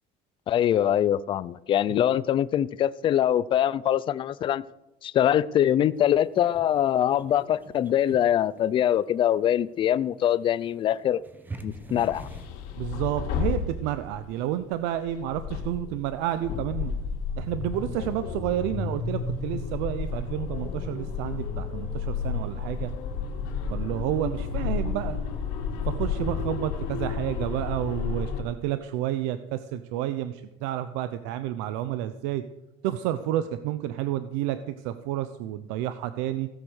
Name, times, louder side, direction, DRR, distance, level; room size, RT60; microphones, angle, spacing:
voice 1, 0.5-4.6 5.0-11.2 11.6-12.3, left 10 dB, 30° left, 17 dB, 0.4 m, -23 dB
sound 1, 6.0-12.5, right 3 dB, 10° right, 0.9 m, -45 dB
sound 2, 11.7-14.3 15.1-28.4, left 6 dB, 75° left, 3.1 m, -32 dB
voice 2, 12.8-16.9 17.4-22.9 23.7-25.2 25.8-32.4 32.8-34.6 34.8-36.5, right 12 dB, 85° right, 11 dB, 0.8 m, -30 dB
16.5 x 8.0 x 6.5 m, 0.96 s
cardioid pair, 175°, 18 cm